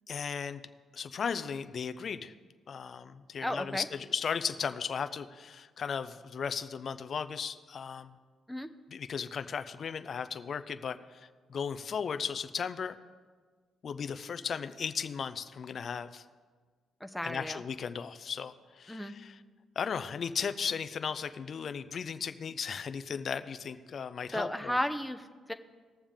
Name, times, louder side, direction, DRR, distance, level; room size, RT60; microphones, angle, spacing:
voice 1, 0.1-0.6 0.9-2.3 2.7-8.1 8.9-13.0 13.8-16.2 17.2-19.4 19.8-24.8, left 6 dB, 50° left, 11 dB, 0.5 m, -36 dB
voice 2, 3.4-3.9 8.5-8.7 17.0-17.6 18.9-19.1 24.3-25.5, left 1 dB, 5° left, 7 dB, 0.8 m, -34 dB
19.0 x 7.1 x 3.6 m, 1.5 s
cardioid pair, 90°, 0 cm